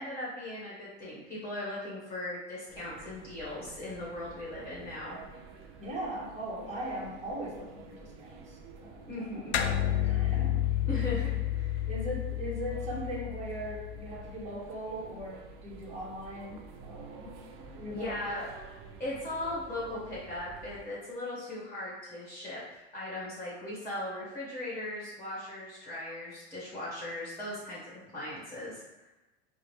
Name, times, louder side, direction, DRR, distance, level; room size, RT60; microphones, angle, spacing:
voice 1, 0.0-5.2 5.5-5.6 9.1-9.6 10.9-11.8 17.9-18.5 19.0-27.8 28.1-29.1, left 1 dB, 10° left, -7 dB, 1.3 m, -38 dB
sound 1, 2.7-20.8, right 4 dB, 45° right, 0.5 m, -51 dB
voice 2, 5.8-9.8 10.0-10.6 11.8-18.5, equal, 25° right, -5 dB, 1.2 m, -40 dB
sound 2, 9.5-14.3, left 12 dB, 80° left, 0.5 m, -31 dB
5.0 x 2.1 x 3.2 m, 1.1 s
supercardioid pair, 125°, 30 cm